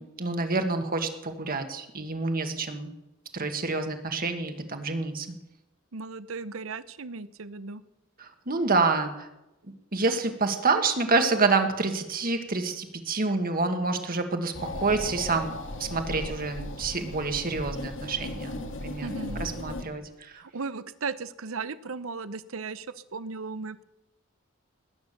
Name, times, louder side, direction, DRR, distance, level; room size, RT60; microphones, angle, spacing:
voice 1, 0.2-2.9 3.3-5.3 8.2-9.3 9.9-15.5 15.8-19.1 19.4-20.4, right 3 dB, 45° right, 6 dB, 1.8 m, -27 dB
voice 2, 5.9-7.8 19.0-19.4 20.3-23.8, right 4 dB, 70° right, 15 dB, 0.8 m, -36 dB
sound 1, 14.5-19.8, left 1 dB, 65° left, 2.1 m, -36 dB
19.0 x 9.5 x 6.8 m, 0.95 s
head